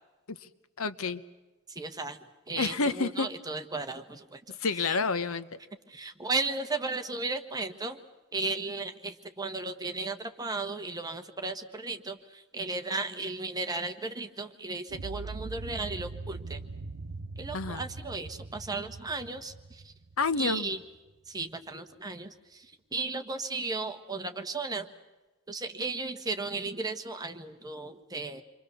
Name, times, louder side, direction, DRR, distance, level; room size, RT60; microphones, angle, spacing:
voice 1, 0.8-1.2 2.6-3.3 4.6-5.6 17.5-17.8 20.2-20.7, left 4 dB, 70° left, 13 dB, 1.0 m, -29 dB
voice 2, 1.7-2.2 2.5-4.4 4.8-5.0 5.9-8.0 8.3-16.6 17.4-19.5 20.4-20.8 21.3-22.3 22.9-24.9 25.5-28.4, right 3 dB, 20° right, 6 dB, 1.3 m, -35 dB
sound 1, 14.9-21.0, right 3 dB, 85° right, 0.9 m, -41 dB
28.5 x 24.0 x 7.0 m, 1.1 s
head